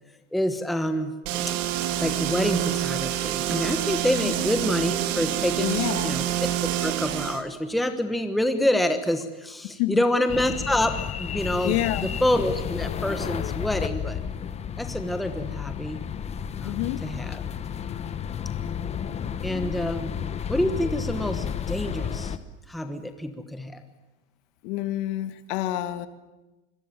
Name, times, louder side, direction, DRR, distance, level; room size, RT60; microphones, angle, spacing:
voice 1, 0.3-1.1 2.0-6.5 6.8-14.2 14.8-16.0 16.6-17.4 19.4-20.2 20.5-22.4 22.7-23.8, left 1 dB, ahead, 7 dB, 1.2 m, -27 dB
sound 1, 1.2-7.4, right 12 dB, 75° right, 2.9 m, -27 dB
voice 2, 5.6-6.2 9.8-10.0 11.6-12.1 16.7-17.1 24.6-26.1, left 15 dB, 55° left, 11 dB, 2.0 m, -28 dB
sound 2, 10.3-22.4, left 8 dB, 15° left, 0.9 m, -32 dB
27.0 x 22.0 x 9.2 m, 1.1 s
supercardioid pair, 160°, 38 cm